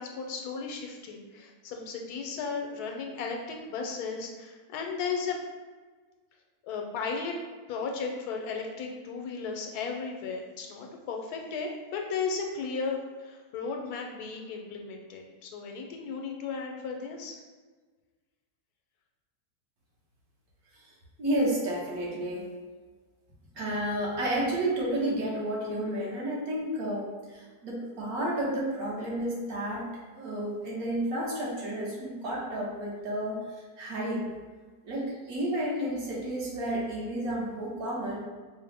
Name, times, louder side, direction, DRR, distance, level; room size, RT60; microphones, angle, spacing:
voice 1, 0.0-5.4 6.6-7.3 7.7-17.4, left 5 dB, 85° left, 2 dB, 1.1 m, -35 dB
voice 2, 21.2-22.5 23.5-34.3 34.8-38.2, right 1 dB, 70° right, -4 dB, 1.5 m, -31 dB
5.1 x 2.1 x 3.3 m, 1.4 s
omnidirectional pair, 1.6 m